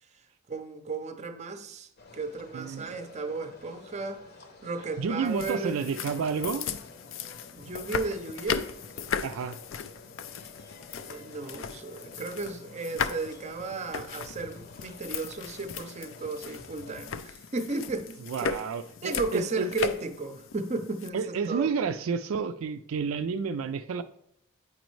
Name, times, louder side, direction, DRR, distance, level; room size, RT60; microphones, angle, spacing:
voice 1, 0.5-1.9 2.1-4.2 4.6-5.8 7.5-8.7 11.0-18.5 19.0-21.7, right 3 dB, 35° right, 8 dB, 0.6 m, -34 dB
sound 1, 2.0-17.2, left 3 dB, 50° left, 0.8 m, -51 dB
voice 2, 2.5-3.0 5.0-6.7 9.2-9.6 18.2-19.7 21.1-24.0, right 5 dB, 90° right, 9 dB, 0.4 m, -30 dB
sound 2, 5.3-21.1, left 6 dB, 70° left, 0.4 m, -37 dB
8.5 x 5.2 x 3.1 m, 0.75 s
head